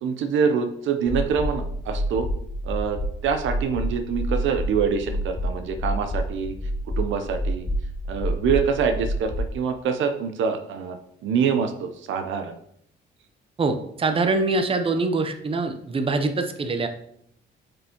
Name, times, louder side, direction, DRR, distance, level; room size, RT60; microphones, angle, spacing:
voice 1, 0.0-2.3 2.6-6.5 7.0-7.7 8.1-12.5, right 6 dB, 75° right, 8 dB, 0.6 m, -25 dB
sound 1, 1.1-9.5, equal, 25° left, 0.9 m, -28 dB
voice 2, 13.6-16.9, right 3 dB, 25° right, 7 dB, 0.7 m, -24 dB
7.6 x 4.4 x 2.9 m, 0.71 s
cardioid pair, 90°, 20 cm